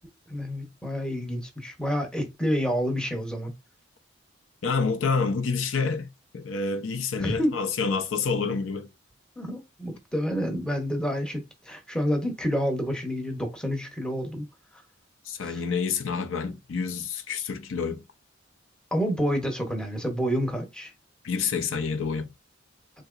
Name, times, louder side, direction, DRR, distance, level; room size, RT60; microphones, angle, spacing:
voice 1, 0.3-3.5 7.2-7.5 9.4-14.5 14.7-14.8 15.4-15.6 18.9-20.9, equal, 5° left, 0.7 m, -28 dB
voice 2, 4.6-6.1 6.3-8.9 15.2-18.0 21.2-22.3, left 5 dB, 80° left, 0.5 m, -28 dB
3.6 x 2.8 x 2.4 m
head